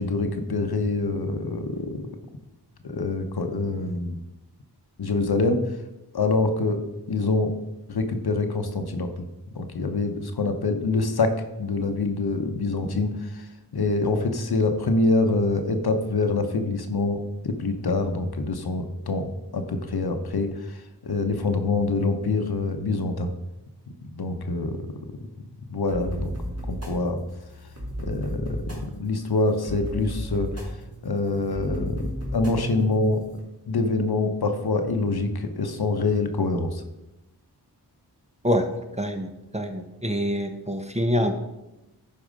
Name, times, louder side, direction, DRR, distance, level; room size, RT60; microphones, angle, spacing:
voice 1, 0.0-2.0 2.8-4.2 5.0-5.8 6.1-6.8 7.1-7.5 7.9-9.3 9.5-23.3 24.1-25.2 25.7-26.3 26.7-27.2 28.0-30.7 31.0-33.2 33.7-36.8, left 3 dB, 65° left, 6 dB, 1.0 m, -25 dB
sound 1, 25.9-33.4, equal, 35° right, 2.8 m, -35 dB
voice 2, 39.0-41.3, equal, 15° right, 5 dB, 1.0 m, -25 dB
11.5 x 4.7 x 5.2 m, 0.96 s
wide cardioid pair, 70°, 41 cm